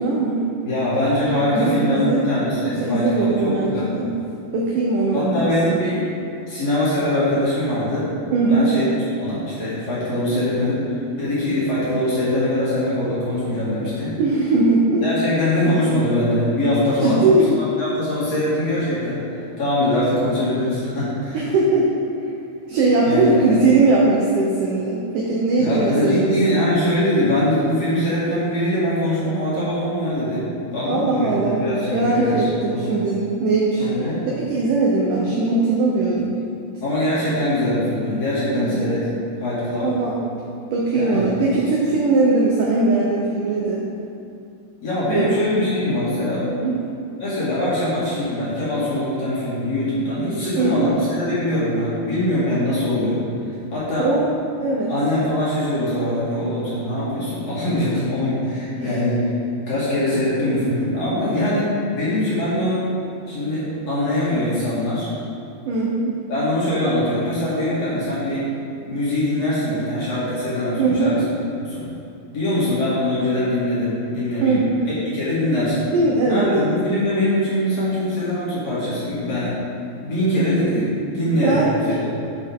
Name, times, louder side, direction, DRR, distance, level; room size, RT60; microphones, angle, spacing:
voice 1, 0.0-0.5 1.5-2.2 2.6-4.2 4.5-5.8 8.3-8.8 14.2-15.0 17.0-17.5 21.3-21.9 22.2-22.3 22.7-26.6 30.8-33.9 34.4-36.3 38.4-39.0 39.8-40.2 40.7-43.8 45.1-45.4 46.5-46.8 50.6-50.9 54.0-54.9 58.8-59.0 65.7-66.2 70.8-71.2 74.4-74.9 75.6-76.4 81.3-82.1, right 3 dB, 85° right, -3 dB, 1.8 m, -20 dB
voice 2, 0.7-3.9 5.1-6.1 6.5-8.8 9.2-14.2 15.0-17.2 17.8-19.2 19.6-21.4 23.0-23.4 25.6-32.8 33.8-34.2 36.8-39.0 39.4-39.9 40.9-41.3 44.8-46.5 47.2-53.2 53.7-54.1 54.9-59.3 59.7-62.9 63.3-65.1 66.3-68.5 68.9-71.2 71.6-71.8 72.3-75.9 76.3-79.5 80.0-81.6 82.1-82.2, left 1 dB, 45° left, -10 dB, 3.0 m, -22 dB
11.0 x 6.9 x 3.7 m, 2.7 s
omnidirectional pair, 5.0 m